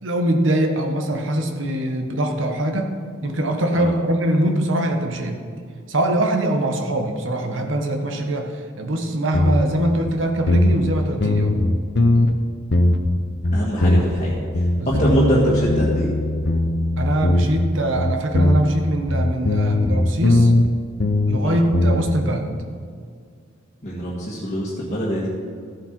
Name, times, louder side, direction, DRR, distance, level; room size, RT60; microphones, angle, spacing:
voice 1, 0.0-2.9 3.2-5.4 5.9-11.5 14.8-15.1 17.0-20.5 21.3-22.5, right 1 dB, 75° right, 4 dB, 1.3 m, -22 dB
sound 1, 9.3-9.8 10.1-10.2 10.5-10.9 11.2-12.4 12.7-13.2 13.4-14.2 14.5-17.7 18.0-20.7 21.0-21.4 21.7-22.2, left 1 dB, 60° left, 0.8 m, -19 dB
voice 2, 13.5-14.4 14.9-16.1 21.4-21.6 23.8-25.3, equal, 40° left, -6 dB, 1.7 m, -23 dB
14.0 x 7.7 x 4.5 m, 2.2 s
head